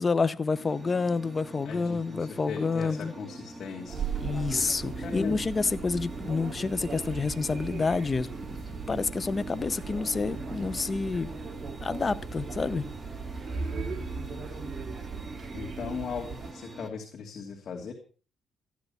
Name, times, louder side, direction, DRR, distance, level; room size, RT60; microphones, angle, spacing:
voice 1, 0.0-3.1 4.2-8.3 8.9-11.3 11.8-12.8, left 4 dB, 30° left, 0.8 m, -28 dB
sound 1, 0.5-16.9, right 2 dB, 15° right, 2.6 m, -43 dB
voice 2, 1.6-4.1 5.0-5.4 15.5-17.9, left 5 dB, 60° left, 2.7 m, -38 dB
sound 2, 3.9-16.5, right 5 dB, 35° right, 2.7 m, -38 dB
14.5 x 10.5 x 5.7 m
cardioid pair, 90°, 0 cm